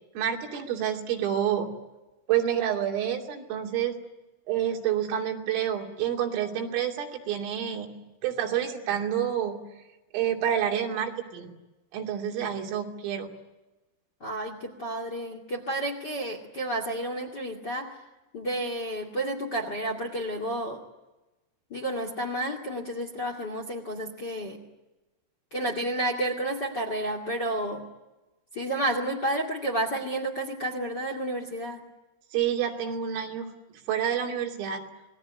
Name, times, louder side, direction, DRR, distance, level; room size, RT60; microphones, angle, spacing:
voice 1, 0.2-1.7 2.3-4.0 4.5-9.7 10.1-11.5 11.9-13.3 32.3-33.5 33.9-34.8, right 9 dB, 85° right, 1 dB, 5.5 m, -28 dB
voice 2, 14.2-17.9 18.3-20.8 21.7-24.6 25.5-27.8 28.5-31.8, right 1 dB, 35° left, 4 dB, 1.7 m, -31 dB
27.5 x 21.0 x 9.6 m, 1.1 s
omnidirectional pair, 5.7 m